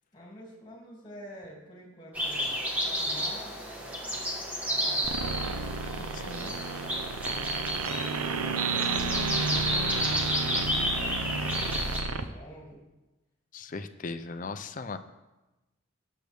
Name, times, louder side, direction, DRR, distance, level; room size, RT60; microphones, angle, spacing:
voice 1, 0.1-5.6 7.0-12.8, equal, 20° left, -2 dB, 2.5 m, -48 dB
sound 1, 2.1-12.0, equal, 5° right, 1.4 m, -32 dB
sound 2, 5.0-12.2, right 4 dB, 90° right, 0.7 m, -31 dB
voice 2, 6.0-6.6 13.5-15.0, left 3 dB, 35° left, 10 dB, 0.5 m, -38 dB
18.5 x 6.6 x 3.5 m, 1.1 s
head